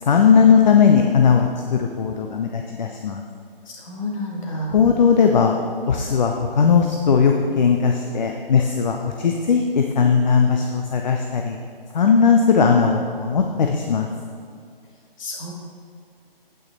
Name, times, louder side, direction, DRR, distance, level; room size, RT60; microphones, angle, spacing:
voice 1, 0.0-3.2 4.7-5.5 5.9-11.6 11.9-14.1, left 6 dB, 50° left, 3 dB, 0.8 m, -18 dB
voice 2, 3.8-4.7 15.2-15.5, left 1 dB, 35° left, -2 dB, 2.0 m, -29 dB
9.0 x 8.9 x 4.1 m, 2.4 s
figure-of-eight pair, 150°, 29 cm